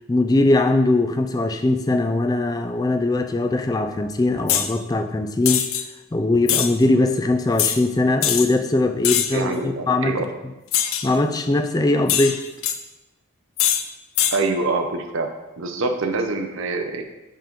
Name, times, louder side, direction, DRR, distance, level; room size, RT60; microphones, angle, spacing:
voice 1, 0.1-5.7 6.1-10.2 11.0-12.4, left 2 dB, 20° left, 6 dB, 0.3 m, -20 dB
sound 1, 4.5-4.7 5.5-5.8 6.5-6.7 7.6-7.8 8.2-8.5 9.0-9.4 10.7-11.1 12.1-12.8 13.6-13.8 14.2-14.4, left 10 dB, 75° left, 0.5 m, -21 dB
voice 2, 9.3-10.3 14.3-15.3 15.6-17.0, right 3 dB, 70° right, 4 dB, 0.6 m, -25 dB
5.4 x 3.8 x 5.1 m, 1.0 s
head